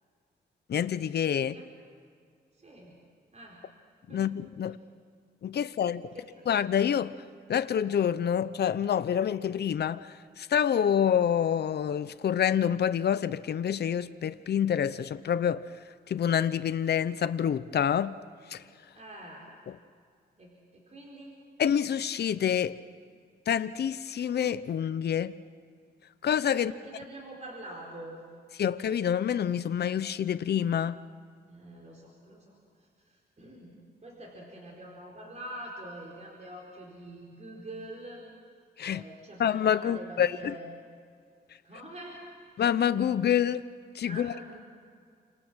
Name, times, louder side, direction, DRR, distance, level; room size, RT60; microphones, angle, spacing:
voice 1, 0.7-1.6 4.1-4.8 5.4-6.0 6.5-7.2 7.5-15.7 16.1-18.2 18.5-18.6 21.6-22.8 23.5-25.3 26.2-26.7 28.6-31.0 38.8-39.0 39.4-40.5 42.6-43.7 43.9-44.3, left 9 dB, 70° left, 0.6 m, -27 dB
voice 2, 2.5-2.9 3.3-3.6 4.1-4.3 6.0-6.5 18.9-19.5 20.4-21.5 26.5-28.2 31.5-33.7 34.0-38.2 38.9-40.7 41.6-42.2 44.0-44.6, right 1 dB, 40° right, 4.4 m, -45 dB
29.0 x 26.5 x 6.3 m
wide cardioid pair, 105°, 18 cm